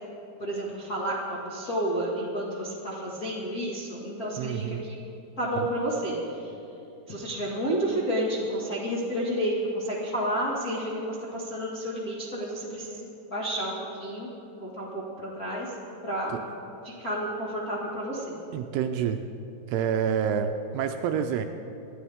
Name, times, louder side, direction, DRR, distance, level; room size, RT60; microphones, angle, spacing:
voice 1, 0.4-5.0 5.4-6.1 7.1-13.0 13.3-14.3 14.6-15.7 16.0-16.4 16.8-18.4, right 1 dB, 50° left, -7 dB, 1.0 m, -30 dB
voice 2, 4.4-4.8 5.6-5.7 16.3-16.4 18.5-19.2 19.7-21.5, right 8 dB, 80° right, 7 dB, 2.4 m, -28 dB
26.5 x 11.0 x 3.6 m, 2.9 s
omnidirectional pair, 5.0 m